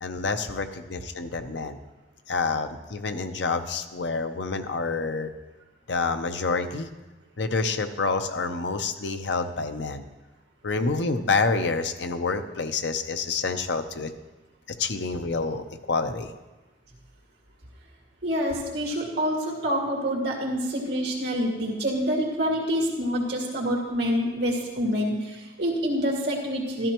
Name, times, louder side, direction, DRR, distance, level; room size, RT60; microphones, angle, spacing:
voice 1, 0.0-1.8 2.3-5.3 5.9-6.9 7.4-10.0 10.6-14.1 14.7-16.3, left 4 dB, 85° left, 8 dB, 0.7 m, -28 dB
voice 2, 18.2-26.9, equal, 75° right, -2 dB, 2.1 m, -27 dB
13.5 x 13.0 x 3.0 m, 1.1 s
head